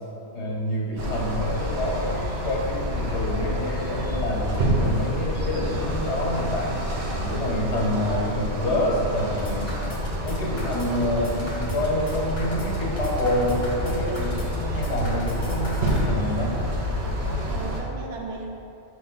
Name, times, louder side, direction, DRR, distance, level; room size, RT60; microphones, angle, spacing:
voice 1, 0.3-6.8 7.2-9.7 10.2-16.7, left 1 dB, 80° left, -2 dB, 1.3 m, -27 dB
sound 1, 1.0-17.8, equal, 70° right, 1.1 m, -28 dB
voice 2, 3.2-3.7 7.7-8.4 17.4-18.5, right 4 dB, 90° right, 0 dB, 1.1 m, -37 dB
sound 2, 9.2-16.0, equal, 35° left, 0.8 m, -39 dB
5.3 x 3.2 x 5.5 m, 2.7 s
omnidirectional pair, 1.2 m